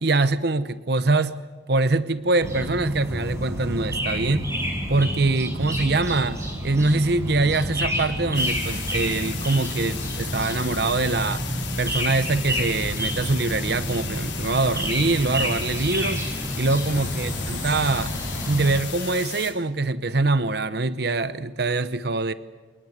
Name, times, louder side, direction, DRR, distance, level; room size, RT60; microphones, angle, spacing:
voice 1, 0.0-1.4 1.7-4.5 4.9-6.4 6.6-11.4 11.8-16.2 16.6-18.1 18.5-22.3, right 3 dB, 60° right, 13 dB, 0.9 m, -23 dB
sound 1, 2.4-18.8, equal, 15° right, 6.6 m, -29 dB
sound 2, 8.3-19.5, left 9 dB, 80° left, 5.2 m, -36 dB
28.5 x 19.0 x 8.0 m, 1.4 s
head